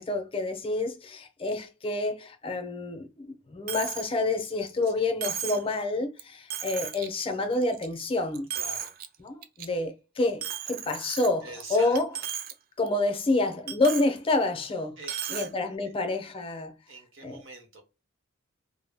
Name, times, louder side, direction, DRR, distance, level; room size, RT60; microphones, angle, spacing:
voice 1, 0.0-8.5 9.2-12.1 12.8-15.0 15.3-16.7 17.2-17.4, left 2 dB, 25° left, 0.5 m, -28 dB
Coin (dropping), 3.7-4.1 4.5-4.6 5.2-5.7 6.2-6.3 6.5-7.1 7.5-8.0 8.3-9.1 9.4-9.7 10.4-11.6 12.0-12.5 12.9-13.0 13.7-14.1 15.0-15.5, right 9 dB, 45° right, 0.3 m, -35 dB
voice 2, 8.5-8.9 11.4-12.0 15.0-15.8 16.9-17.8, right 2 dB, 65° right, 0.8 m, -44 dB
2.2 x 2.0 x 3.3 m
head